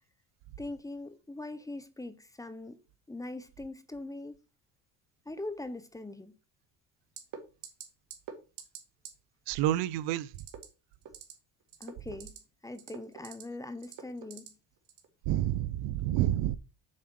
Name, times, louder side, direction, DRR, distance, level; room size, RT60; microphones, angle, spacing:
voice 1, 0.6-2.8 3.1-4.4 5.3-6.4 11.8-12.3 12.6-14.5, left 2 dB, 10° left, 0.8 m, -41 dB
sound 1, 7.2-7.4 7.6-7.8 8.1-8.3 8.6-8.8 9.0-9.1 10.3-10.6 11.0-11.3 11.7-12.4 12.7-13.4 13.8-14.5 14.9-15.1, right 9 dB, 50° right, 2.1 m, -44 dB
voice 2, 9.5-10.3 15.3-16.6, right 13 dB, 80° right, 0.7 m, -29 dB
7.4 x 4.8 x 6.3 m
cardioid pair, 125°, 42 cm